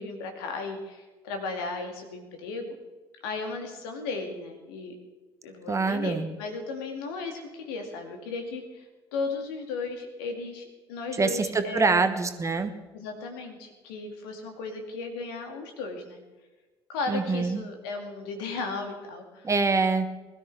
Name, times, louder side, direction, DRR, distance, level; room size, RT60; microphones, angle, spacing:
voice 1, 0.0-2.7 3.2-4.9 5.4-8.9 9.1-12.0 12.9-16.2 16.9-19.5, left 3 dB, 65° left, 4 dB, 2.4 m, -35 dB
voice 2, 5.7-6.3 11.2-12.7 17.1-17.6 19.4-20.1, right 4 dB, 25° right, 8 dB, 1.4 m, -25 dB
22.0 x 13.0 x 3.5 m, 1.2 s
figure-of-eight pair, 55°, 13 cm